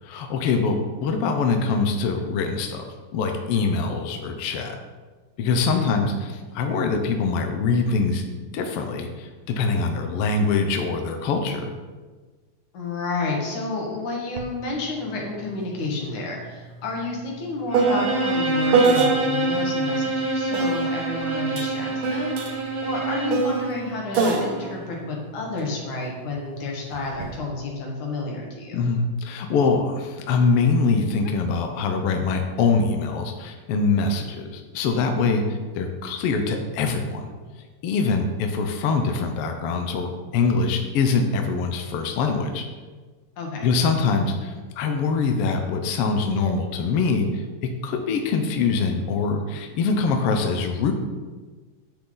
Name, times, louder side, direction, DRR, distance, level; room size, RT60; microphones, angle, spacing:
voice 1, 0.0-2.9 3.1-4.8 5.4-11.7 28.7-37.3 37.8-42.6 43.6-50.9, left 4 dB, 65° left, 4 dB, 1.6 m, -24 dB
voice 2, 5.7-6.0 12.7-28.8 43.4-43.7, left 3 dB, 80° left, -1 dB, 3.2 m, -30 dB
sound 1, 14.4-14.5 14.8-19.6 20.5-26.1 26.9-27.3, right 4 dB, 65° right, 1.3 m, -26 dB
Bowed string instrument, 17.7-23.5, right 2 dB, 85° right, 0.5 m, -26 dB
9.7 x 7.4 x 3.9 m, 1.3 s
omnidirectional pair, 3.3 m